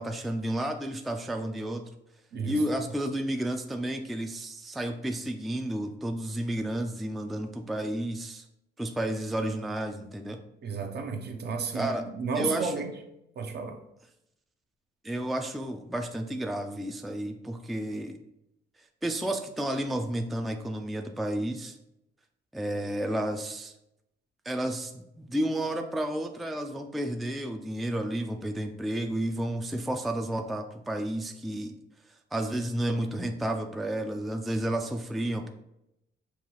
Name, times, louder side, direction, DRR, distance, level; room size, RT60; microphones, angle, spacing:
voice 1, 0.0-1.8 2.4-8.5 8.8-10.4 11.7-12.0 12.4-12.7 15.0-18.2 19.0-21.8 22.5-23.7 24.5-31.7 32.3-35.5, right 1 dB, ahead, 5 dB, 0.3 m, -31 dB
voice 2, 2.3-2.6 10.6-12.9 13.4-13.8, right 5 dB, 55° right, 5 dB, 0.7 m, -32 dB
5.5 x 2.3 x 3.1 m, 0.83 s
cardioid pair, 90°, 20 cm